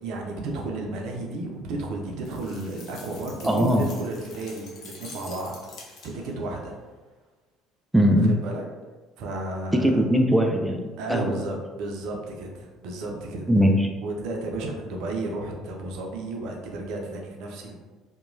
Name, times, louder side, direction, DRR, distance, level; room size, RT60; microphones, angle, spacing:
voice 1, 0.0-6.7 8.4-8.6 9.2-10.0 11.0-13.5 14.0-17.7, right 2 dB, 70° right, 1 dB, 0.5 m, -33 dB
sound 1, 2.2-6.4, left 3 dB, 55° left, 0.7 m, -46 dB
voice 2, 3.4-3.9 7.9-8.4 9.7-11.3 13.5-13.9, equal, 5° right, 2 dB, 0.4 m, -20 dB
2.8 x 2.2 x 2.6 m, 1.3 s
hypercardioid pair, 70°, 0 cm